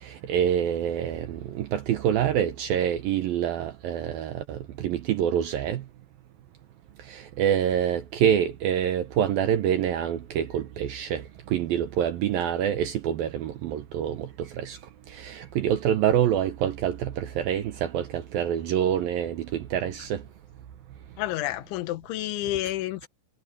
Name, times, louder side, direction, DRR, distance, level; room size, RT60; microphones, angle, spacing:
voice 1, 0.0-5.8 7.1-14.8 15.1-20.2, right 9 dB, 70° right, 2.3 m, -26 dB
voice 2, 21.2-23.1, left 15 dB, 90° left, 3.5 m, -30 dB
omnidirectional pair, 5.2 m